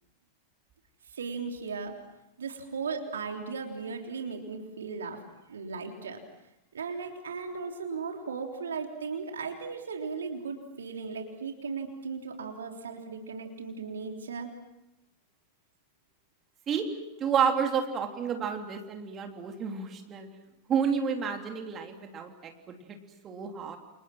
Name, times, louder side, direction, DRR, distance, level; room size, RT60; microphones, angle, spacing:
voice 1, 1.1-2.0 2.4-5.2 5.5-6.2 6.7-14.5, right 5 dB, 70° right, 3 dB, 3.5 m, -37 dB
voice 2, 17.2-20.3 20.7-23.0 23.2-23.8, right 7 dB, 25° right, 4 dB, 3.3 m, -30 dB
29.5 x 29.0 x 6.1 m, 0.91 s
figure-of-eight pair, 90°, 0 cm